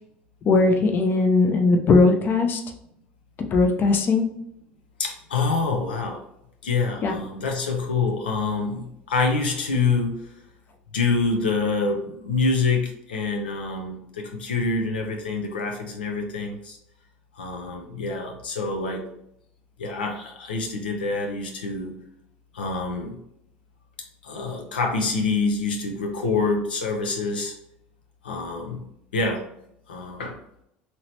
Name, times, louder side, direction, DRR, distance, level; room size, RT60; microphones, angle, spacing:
voice 1, 0.5-2.6 3.5-4.3 7.0-7.2, left 3 dB, 45° left, 5 dB, 0.6 m, -19 dB
voice 2, 5.0-6.2 6.6-10.2 10.9-16.8 17.4-19.0 19.8-21.9 22.5-23.2 24.2-27.5 28.2-28.8 29.1-29.4 29.9-30.4, left 4 dB, 90° left, 2 dB, 0.5 m, -26 dB
2.9 x 2.8 x 3.1 m, 0.78 s
hypercardioid pair, 75°, 5 cm